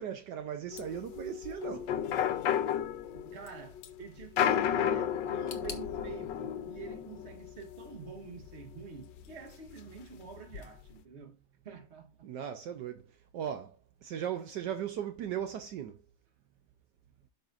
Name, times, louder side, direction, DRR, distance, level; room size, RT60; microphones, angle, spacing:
voice 1, 0.0-2.0 12.2-13.1 13.3-13.8 14.0-16.0, right 9 dB, 75° right, 1.3 m, -37 dB
sound 1, 0.7-9.3 9.7-9.8 10.0-10.6, left 9 dB, 75° left, 1.4 m, -33 dB
voice 2, 3.1-11.4 11.6-12.3, right 6 dB, 40° right, 1.4 m, -47 dB
sound 2, 5.5-8.3 8.6-9.4 9.7-9.8 10.7-10.8, left 5 dB, 45° left, 1.3 m, -51 dB
12.0 x 5.3 x 2.5 m
omnidirectional pair, 2.0 m